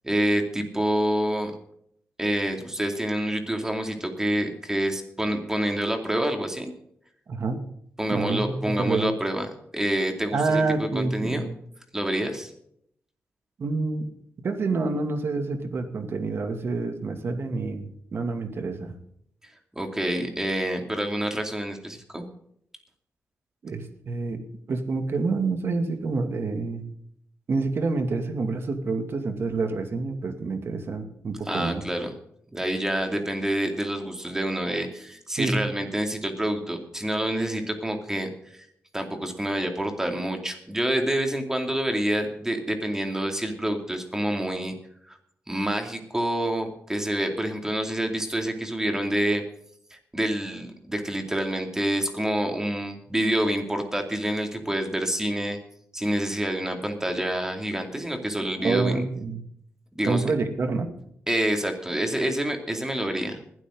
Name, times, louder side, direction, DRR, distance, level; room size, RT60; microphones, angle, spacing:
voice 1, 0.0-1.5 2.2-6.7 8.0-9.5 9.7-11.5 11.9-12.5 19.8-22.2 31.5-32.1 32.5-38.6 38.9-44.7 45.1-45.2 45.5-49.4 50.1-55.6 55.9-59.0 60.0-60.2 61.3-63.4, right 1 dB, 10° right, 4 dB, 2.6 m, -27 dB
voice 2, 7.3-7.6 8.1-9.1 10.3-11.5 13.6-14.1 14.4-18.9 23.6-24.4 24.7-26.8 27.5-31.8 35.4-35.6 58.6-59.4 60.1-60.9, right 3 dB, 55° right, 6 dB, 2.4 m, -27 dB
20.5 x 12.5 x 3.9 m, 0.69 s
wide cardioid pair, 125°, 5 cm